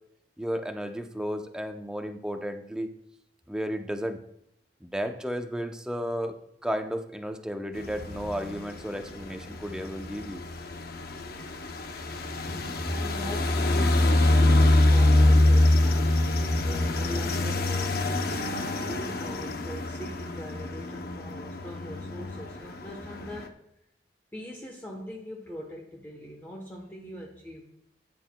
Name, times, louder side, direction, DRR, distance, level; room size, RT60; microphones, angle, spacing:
voice 1, 0.4-2.9 3.5-4.2 4.8-6.4 6.6-10.4, equal, 5° right, 5 dB, 0.6 m, -33 dB
sound 1, 7.8-23.5, left 1 dB, 60° left, 0.7 m, -25 dB
voice 2, 12.5-23.6 24.3-27.7, equal, 10° left, -2 dB, 1.0 m, -41 dB
13.0 x 9.3 x 2.2 m, 0.76 s
head